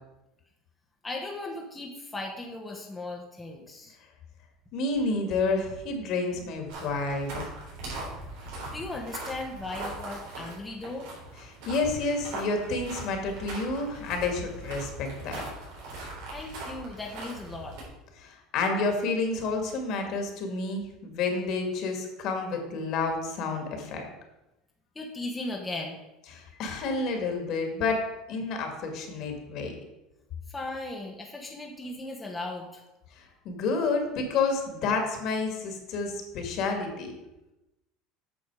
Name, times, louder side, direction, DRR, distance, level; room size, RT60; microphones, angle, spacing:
voice 1, 1.0-4.0 8.7-11.1 16.3-17.8 24.9-26.0 30.5-32.8, left 2 dB, 15° left, 0 dB, 1.1 m, -37 dB
voice 2, 4.7-7.5 11.7-15.4 18.2-24.1 26.3-29.7 33.2-37.1, left 3 dB, 55° left, 4 dB, 2.0 m, -30 dB
sound 1, 6.7-17.8, right 2 dB, 80° right, 3.6 m, -40 dB
8.7 x 6.2 x 4.8 m, 0.96 s
supercardioid pair, 120°, 0 cm